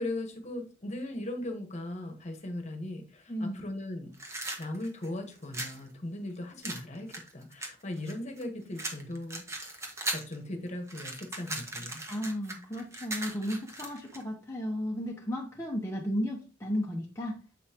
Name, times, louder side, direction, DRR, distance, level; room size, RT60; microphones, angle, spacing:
voice 1, 0.0-4.1 4.6-9.4 10.1-12.0, left 1 dB, 35° left, 4 dB, 1.3 m, -38 dB
voice 2, 3.3-3.7 12.1-17.4, equal, 15° left, -2 dB, 0.9 m, -34 dB
sound 1, 4.1-5.8 6.6-8.4 8.8-10.4 10.7-14.2, right 2 dB, 15° right, 1.2 m, -38 dB
7.6 x 5.5 x 2.9 m, 0.37 s
head